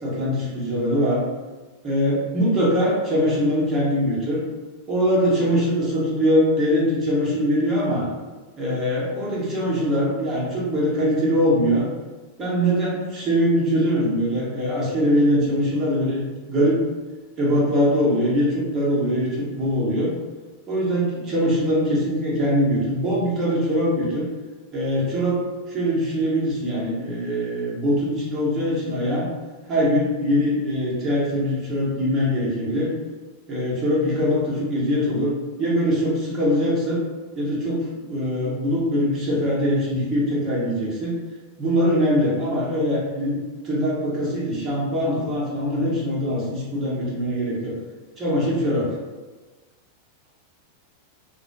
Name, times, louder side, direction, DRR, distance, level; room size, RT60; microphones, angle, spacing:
voice 1, 0.0-1.2 1.8-4.4 4.9-8.1 8.6-11.9 12.4-16.8 17.4-20.1 20.7-24.3 24.7-25.4 25.7-29.3 29.7-32.9 33.5-35.3 35.6-37.0 37.4-41.1 41.6-43.4 43.6-47.7 48.2-48.9, equal, 25° right, -6 dB, 1.0 m, -22 dB
2.3 x 2.2 x 2.7 m, 1.3 s
figure-of-eight pair, 90°, 0 cm